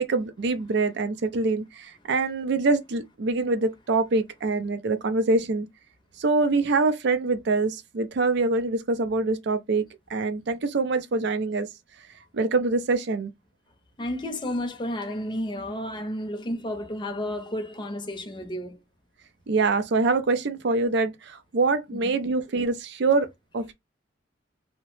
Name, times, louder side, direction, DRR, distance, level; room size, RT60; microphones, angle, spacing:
voice 1, 0.0-5.7 6.2-11.7 12.3-13.3 19.5-23.3 23.5-23.7, right 3 dB, 65° right, 0.4 m, -25 dB
voice 2, 14.0-18.8 21.9-22.1, left 1 dB, 25° left, 0.6 m, -32 dB
2.8 x 2.1 x 3.0 m
head